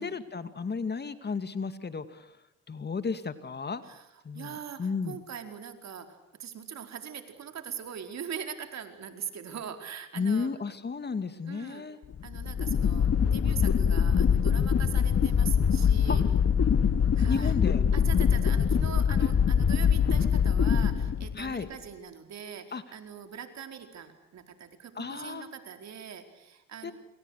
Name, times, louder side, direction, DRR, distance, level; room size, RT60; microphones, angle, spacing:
voice 1, 0.0-2.3 2.7-3.8 4.2-5.2 10.2-12.0 16.1-16.2 17.3-17.9 21.4-21.7 22.7-22.8 25.0-25.5 26.8-26.9, left 5 dB, 35° left, 11 dB, 2.4 m, -33 dB
voice 2, 4.3-10.5 11.4-11.9 12.2-16.2 17.1-17.6 17.9-26.9, right 8 dB, 60° right, 7 dB, 4.5 m, -42 dB
sound 1, 12.1-21.6, left 7 dB, 50° left, 2.0 m, -24 dB
28.5 x 28.0 x 6.6 m, 0.86 s
cardioid pair, 90°, 30 cm